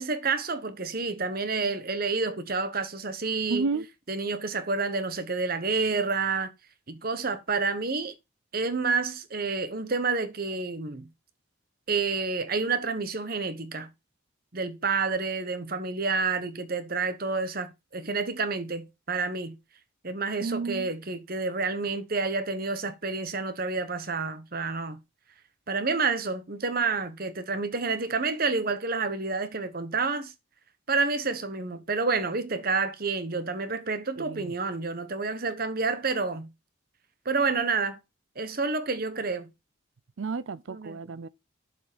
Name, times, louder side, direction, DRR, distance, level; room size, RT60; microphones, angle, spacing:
voice 1, 0.0-3.7 4.1-6.5 6.9-8.1 8.5-11.1 11.9-13.9 14.5-19.6 20.0-25.0 25.7-30.3 30.9-36.5 37.2-38.0 38.4-39.5 40.7-41.0, right 4 dB, 45° right, 1.1 m, -29 dB
voice 2, 3.5-3.8 20.4-20.9 34.2-34.5 40.2-41.3, right 4 dB, 65° right, 0.5 m, -31 dB
7.5 x 6.1 x 5.1 m
head